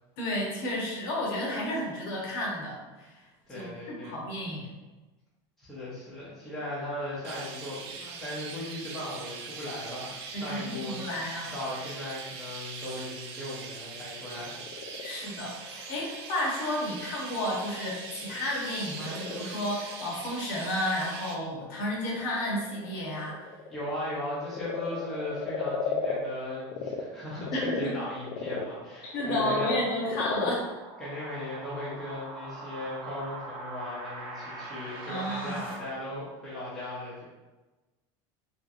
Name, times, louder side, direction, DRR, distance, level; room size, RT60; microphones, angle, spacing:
voice 1, 0.2-3.2 3.5-4.7 10.3-11.5 15.0-23.4 27.5-27.9 29.1-30.7 35.1-35.6, left 1 dB, 55° left, -3 dB, 1.0 m, -32 dB
voice 2, 3.5-4.2 5.6-11.2 11.5-14.6 23.7-29.7 31.0-37.2, left 1 dB, ahead, -10 dB, 0.7 m, -37 dB
Chirp tweet, 7.2-21.4, right 5 dB, 80° right, 0.5 m, -42 dB
Frog, 14.2-27.0 27.4-32.0, left 6 dB, 70° left, 0.4 m, -37 dB
sound 1, 27.1-35.7, right 2 dB, 40° right, 0.7 m, -44 dB
3.1 x 2.9 x 2.4 m, 1.1 s
supercardioid pair, 175°, 14 cm